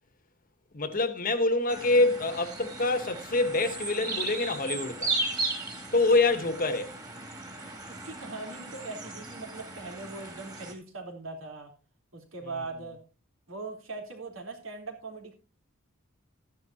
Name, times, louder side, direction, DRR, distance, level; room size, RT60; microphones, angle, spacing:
voice 1, 0.7-5.2 5.9-7.0, left 2 dB, 40° left, 1.3 m, -26 dB
sound 1, 1.7-10.7, right 3 dB, 20° right, 2.6 m, -36 dB
voice 2, 7.9-11.7 12.1-13.0 13.5-15.3, right 3 dB, 75° right, 3.8 m, -40 dB
14.0 x 11.0 x 2.9 m
head